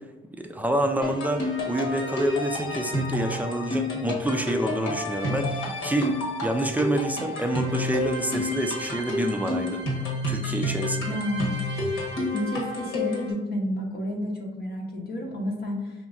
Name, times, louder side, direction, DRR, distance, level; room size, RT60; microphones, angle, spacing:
voice 1, 0.4-9.8 10.3-11.2, right 1 dB, 10° right, 4 dB, 0.4 m, -27 dB
sound 1, 1.0-13.3, left 2 dB, 80° left, 1.2 m, -30 dB
voice 2, 11.0-11.7 12.3-15.9, left 1 dB, 50° left, -1 dB, 0.7 m, -30 dB
5.0 x 2.9 x 2.4 m, 1.2 s
cardioid pair, 90°, 20 cm